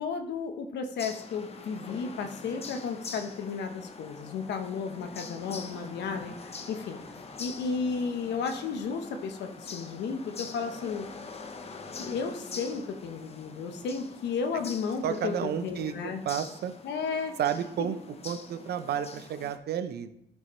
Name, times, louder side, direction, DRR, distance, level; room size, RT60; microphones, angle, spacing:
voice 1, 0.0-7.0 7.4-11.1 12.0-16.2 16.8-17.3 17.8-17.9, left 5 dB, 90° left, 6 dB, 1.0 m, -33 dB
sound 1, 1.0-19.6, left 4 dB, 35° left, 0.8 m, -44 dB
voice 2, 15.0-15.9 16.2-16.7 17.4-18.0 18.2-20.1, right 9 dB, 70° right, 10 dB, 0.7 m, -31 dB
12.5 x 5.4 x 3.1 m, 0.77 s
cardioid pair, 120°, 17 cm